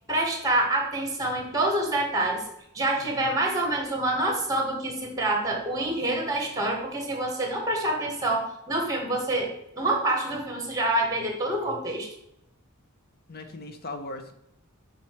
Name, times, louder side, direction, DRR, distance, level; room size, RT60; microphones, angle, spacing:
voice 1, 0.1-2.4 2.7-12.1, right 1 dB, 15° right, 1 dB, 2.0 m, -27 dB
voice 2, 3.0-3.4 13.3-14.3, left 2 dB, 45° left, 6 dB, 0.9 m, -39 dB
7.3 x 6.1 x 4.9 m, 0.78 s
head